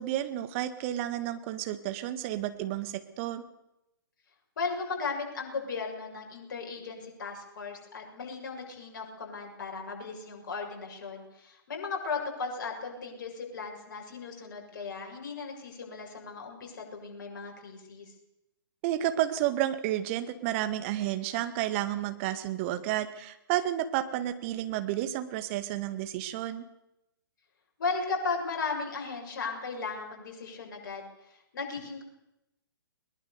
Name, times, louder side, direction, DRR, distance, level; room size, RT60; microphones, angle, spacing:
voice 1, 0.0-3.4 18.8-26.6, right 13 dB, 30° right, 10 dB, 1.9 m, -31 dB
voice 2, 4.6-18.1 27.8-31.0 31.5-32.0, left 4 dB, 50° left, 1 dB, 7.0 m, -36 dB
21.5 x 21.0 x 6.9 m, 0.87 s
figure-of-eight pair, 120°, 12 cm